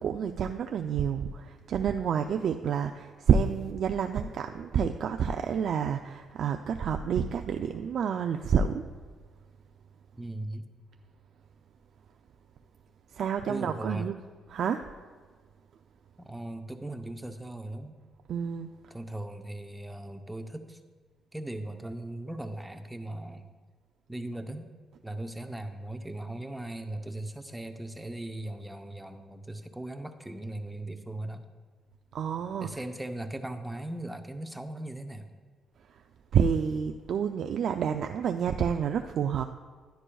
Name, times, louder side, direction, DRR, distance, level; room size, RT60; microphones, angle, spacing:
voice 1, 0.0-8.8 13.1-14.2 14.5-14.8 18.3-18.7 32.1-32.7 36.3-39.4, right 7 dB, 65° right, 6 dB, 0.3 m, -28 dB
voice 2, 10.1-10.7 13.5-14.1 16.2-18.0 18.9-20.8 21.3-23.5 24.1-24.7 25.0-31.5 32.6-35.3, right 1 dB, 5° right, 6 dB, 0.7 m, -38 dB
11.5 x 11.0 x 2.3 m, 1.5 s
cardioid pair, 90°, 0 cm